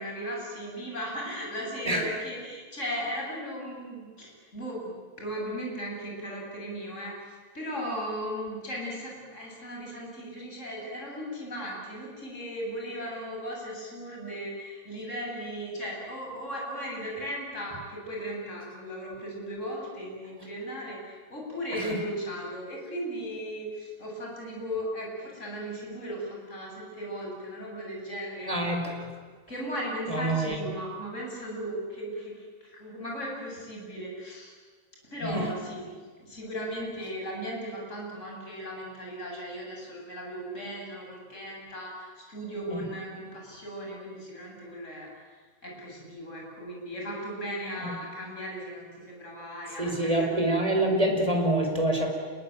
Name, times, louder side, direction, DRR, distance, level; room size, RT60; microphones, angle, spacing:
voice 1, 0.0-28.9 29.5-34.5 35.0-35.8 36.2-50.5, equal, 15° left, -1 dB, 7.6 m, -37 dB
voice 2, 28.5-28.9 30.1-30.6 35.2-35.4 42.7-42.8 47.8-47.9 49.8-52.1, right 1 dB, 5° right, 1 dB, 4.4 m, -26 dB
28.5 x 22.5 x 9.2 m, 1.5 s
omnidirectional pair, 5.5 m